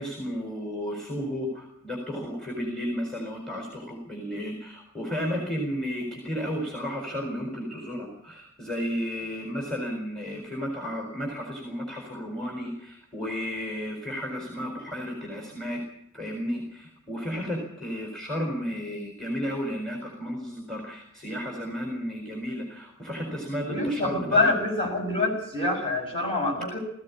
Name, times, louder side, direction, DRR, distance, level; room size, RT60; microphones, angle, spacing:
voice 1, 0.0-15.8 16.1-24.6, equal, ahead, 0 dB, 4.3 m, -33 dB
voice 2, 23.7-26.8, left 2 dB, 25° left, 0 dB, 6.3 m, -25 dB
19.5 x 15.5 x 9.7 m, 0.75 s
head